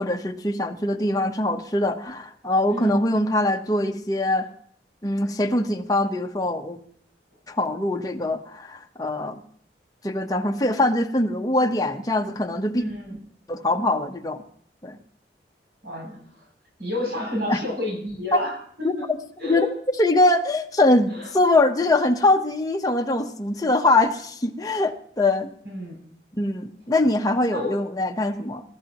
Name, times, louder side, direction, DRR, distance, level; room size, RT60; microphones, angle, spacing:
voice 1, 0.0-4.5 5.0-6.8 7.5-9.4 10.0-12.8 13.5-14.4 14.8-15.0 17.5-17.6 18.8-18.9 19.4-19.7 20.0-25.5 26.4-28.6, left 2 dB, 20° left, 4 dB, 1.0 m, -23 dB
voice 2, 2.7-3.1 12.8-13.2 15.8-16.5 16.8-19.1 19.4-19.7 21.1-21.3 25.6-26.0 27.5-27.8, left 2 dB, 65° right, -2 dB, 7.4 m, -30 dB
21.0 x 13.0 x 3.0 m, 0.63 s
head